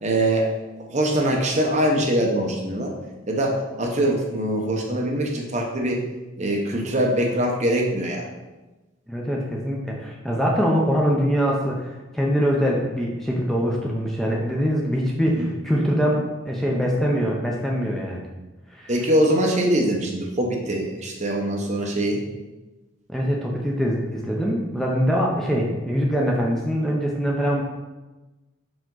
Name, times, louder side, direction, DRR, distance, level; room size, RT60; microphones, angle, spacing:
voice 1, 0.0-0.5 0.9-2.9 3.3-6.0 6.4-8.3 15.3-15.5 18.9-22.2, right 1 dB, 35° right, 0 dB, 0.9 m, -23 dB
voice 2, 9.1-11.9 12.1-18.3 18.7-18.9 23.1-27.6, equal, ahead, -3 dB, 0.6 m, -23 dB
5.0 x 4.9 x 3.9 m, 1.1 s
head